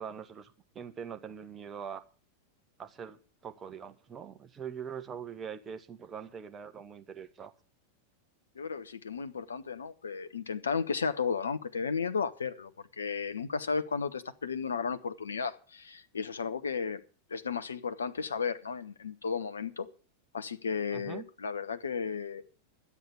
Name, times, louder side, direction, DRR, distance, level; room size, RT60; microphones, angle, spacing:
voice 1, 0.0-2.0 2.8-7.5 20.9-21.3, right 7 dB, 20° right, 1.4 m, -43 dB
voice 2, 8.6-12.7 13.0-17.0 17.3-19.9 20.3-22.4, left 5 dB, 70° left, 0.9 m, -34 dB
12.5 x 8.4 x 8.4 m
figure-of-eight pair, 90°, 0 cm